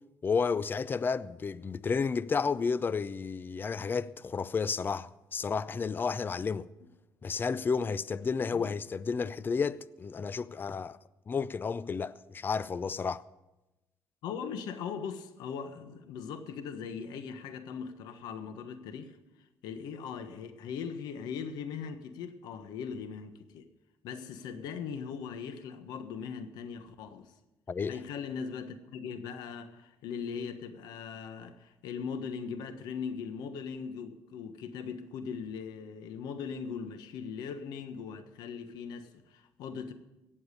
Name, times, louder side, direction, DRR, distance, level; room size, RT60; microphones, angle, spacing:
voice 1, 0.2-6.7 7.2-11.0 11.3-13.2 27.7-28.0, left 5 dB, 30° left, 0.5 m, -32 dB
voice 2, 14.2-19.2 19.6-23.6 24.0-27.3 27.9-39.9, left 6 dB, 85° left, 1.4 m, -40 dB
17.5 x 7.3 x 8.4 m
cardioid pair, 100°, 7 cm